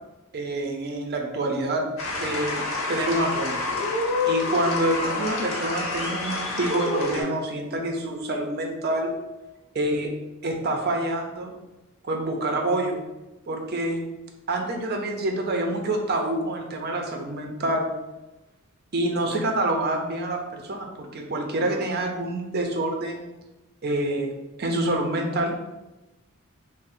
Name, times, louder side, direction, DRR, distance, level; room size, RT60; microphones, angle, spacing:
voice 1, 0.3-1.9 2.2-2.6 2.9-3.6 4.3-9.1 9.7-10.1 10.4-11.5 12.0-13.0 13.5-14.0 14.5-17.9 18.9-23.3 23.8-24.3 24.6-25.5, right 1 dB, 50° right, 2 dB, 0.5 m, -27 dB
sound 1, 2.0-7.2, left 3 dB, 70° left, 1.0 m, -28 dB
3.6 x 2.1 x 4.1 m, 1.0 s
head